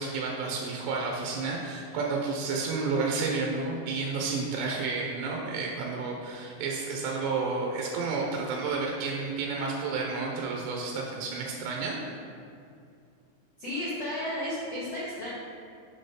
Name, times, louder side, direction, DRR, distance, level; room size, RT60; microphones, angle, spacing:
voice 1, 0.0-12.0, right 4 dB, 90° right, -1 dB, 2.9 m, -31 dB
voice 2, 13.6-15.3, left 1 dB, 80° left, -8 dB, 1.4 m, -33 dB
6.7 x 4.3 x 5.0 m, 2.4 s
omnidirectional pair, 5.0 m